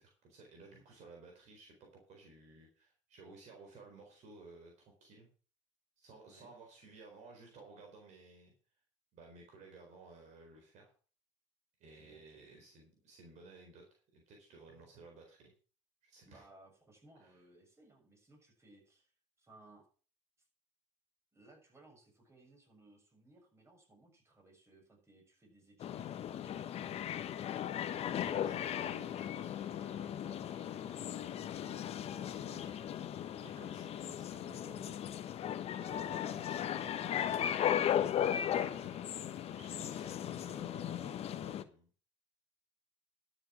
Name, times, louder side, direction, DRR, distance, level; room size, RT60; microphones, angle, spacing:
voice 1, 0.0-5.3 6.0-8.5 9.1-10.9 11.8-15.5 16.0-16.5 17.1-17.4 28.2-35.0 35.8-37.6 38.6-41.9, right 3 dB, 50° right, 1 dB, 4.2 m, -56 dB
voice 2, 11.9-12.5 16.2-19.1 19.4-19.9 21.3-26.7 35.7-36.3, right 2 dB, 20° right, 1 dB, 6.8 m, -62 dB
sound 1, 25.8-41.6, left 10 dB, 45° left, 1.0 m, -37 dB
12.0 x 7.6 x 6.1 m, 0.39 s
hypercardioid pair, 75°, 15 cm